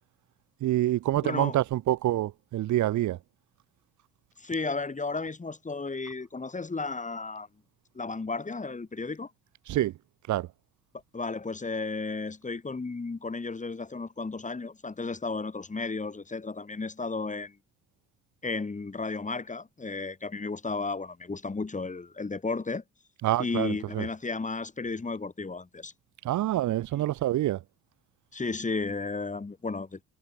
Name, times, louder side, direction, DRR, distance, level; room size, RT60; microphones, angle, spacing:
voice 1, 0.6-3.2 9.7-9.9 10.3-10.5 23.2-24.1 26.2-27.6, right 14 dB, 75° right, 1.1 m, -26 dB
voice 2, 1.2-1.6 4.4-7.5 7.9-9.3 11.1-17.6 18.4-22.8 23.4-25.9 26.9-27.1 28.3-30.0, left 3 dB, 25° left, 5.8 m, -33 dB
cardioid pair, 90°, 30 cm